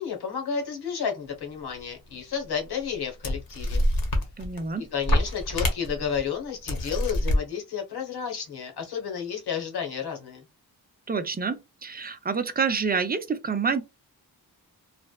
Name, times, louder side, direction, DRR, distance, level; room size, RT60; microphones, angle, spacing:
voice 1, 0.0-3.8 4.8-10.4, left 7 dB, 75° left, 1.3 m, -32 dB
sound 1, 2.1-2.2 2.9-3.0 3.2-4.7 5.0-6.2 6.7-7.4, left 1 dB, 60° left, 1.1 m, -25 dB
voice 2, 4.4-4.9 11.1-13.8, right 5 dB, 25° right, 0.5 m, -28 dB
3.3 x 2.1 x 2.3 m
wide cardioid pair, 95°, 39 cm